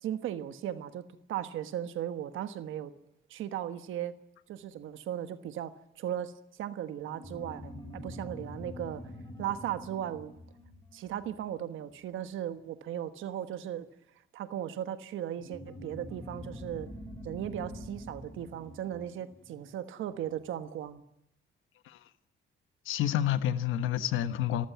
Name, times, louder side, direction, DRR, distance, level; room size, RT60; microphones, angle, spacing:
voice 1, 0.0-1.0 1.3-2.9 3.3-4.1 4.5-9.0 9.4-10.3 10.9-13.9 14.3-16.9 17.2-21.0, right 11 dB, 80° right, 10 dB, 1.3 m, -37 dB
sound 1, 7.0-12.0 15.4-20.3, left 1 dB, 20° left, 5.1 m, -46 dB
voice 2, 22.8-24.7, left 11 dB, 90° left, 12 dB, 1.3 m, -29 dB
30.0 x 14.5 x 9.3 m, 0.83 s
cardioid pair, 90°, 20 cm